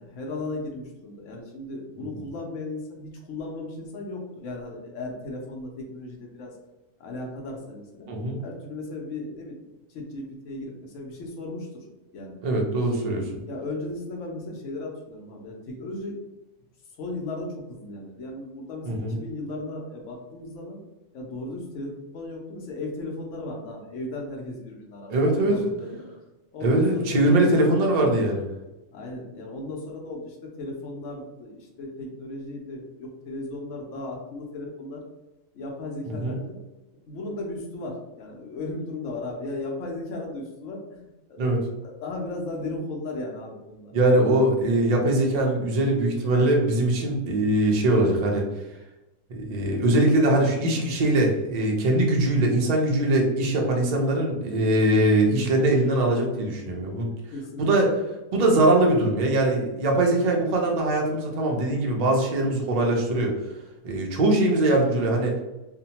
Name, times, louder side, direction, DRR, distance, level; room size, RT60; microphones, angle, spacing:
voice 1, 0.0-6.5 7.0-8.1 8.4-9.6 9.9-11.8 12.1-12.4 13.5-16.2 16.9-20.8 21.1-26.1 26.5-27.5 28.9-35.0 35.5-36.6 37.1-41.4 41.8-43.9 57.3-57.7, left 2 dB, 70° left, 0 dB, 0.9 m, -36 dB
voice 2, 8.1-8.4 12.4-13.3 18.9-19.2 25.1-25.6 26.6-28.5 36.2-36.4 41.4-41.6 43.9-48.4 49.3-57.1 57.6-57.9 58.3-63.3 63.8-65.3, right 1 dB, 65° right, 0 dB, 0.4 m, -22 dB
2.7 x 2.1 x 2.8 m, 1.0 s
omnidirectional pair, 1.4 m